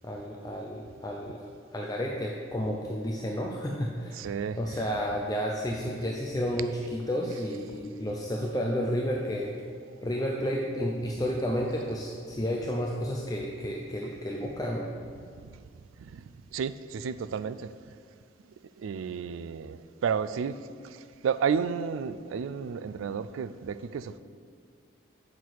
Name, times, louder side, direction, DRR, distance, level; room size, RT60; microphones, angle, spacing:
voice 1, 0.0-1.4 1.7-4.2 4.6-9.6 10.0-14.9, equal, 20° left, 0.5 m, -31 dB
voice 2, 4.2-4.6 16.0-16.2 16.5-17.7 18.8-20.6 20.8-24.2, right 6 dB, 90° right, 0.3 m, -32 dB
8.6 x 6.0 x 4.7 m
head